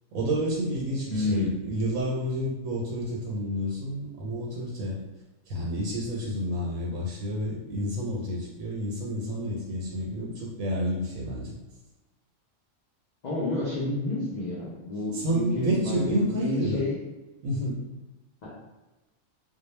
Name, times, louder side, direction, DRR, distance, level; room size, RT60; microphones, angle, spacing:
voice 1, 0.1-5.0 5.5-11.5 15.1-16.8 17.4-17.8, equal, 85° right, -4 dB, 1.0 m, -29 dB
voice 2, 1.1-1.5 13.2-17.0 18.4-18.5, left 2 dB, 90° left, -6 dB, 0.3 m, -30 dB
2.2 x 2.0 x 3.0 m, 1.1 s
omnidirectional pair, 1.4 m